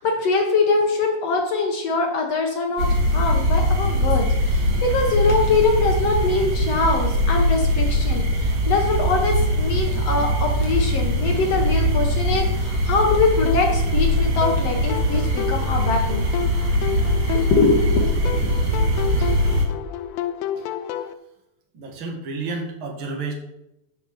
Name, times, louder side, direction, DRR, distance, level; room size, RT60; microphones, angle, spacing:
voice 1, 0.0-16.3 17.5-18.0 18.3-18.5, left 3 dB, 70° left, 2 dB, 1.5 m, -23 dB
sound 1, 2.8-19.7, equal, 85° right, 4.5 m, -21 dB
sound 2, 13.5-21.1, left 11 dB, 85° left, 2.8 m, -31 dB
voice 2, 21.7-23.3, right 3 dB, 40° right, 1 dB, 2.1 m, -31 dB
13.0 x 8.3 x 4.3 m, 0.86 s
omnidirectional pair, 4.7 m